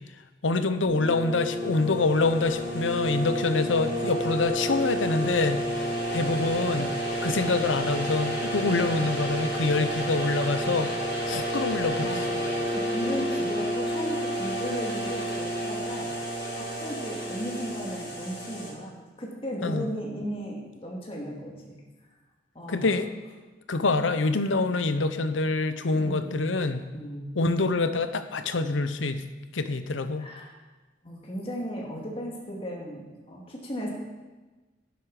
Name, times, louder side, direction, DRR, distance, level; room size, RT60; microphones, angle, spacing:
voice 1, 0.4-10.9 11.3-12.1 19.6-19.9 22.7-23.1 23.7-26.8 27.4-29.2 29.5-30.3, left 3 dB, 80° left, 10 dB, 0.8 m, -26 dB
sound 1, 0.8-18.7, equal, 60° left, 5.0 m, -30 dB
voice 2, 12.0-16.1 16.5-21.8 22.5-23.0 23.9-24.0 25.9-26.4 26.9-27.3 30.2-30.5 31.0-33.9, equal, 30° left, -2 dB, 2.4 m, -36 dB
11.0 x 11.0 x 4.9 m, 1.2 s
head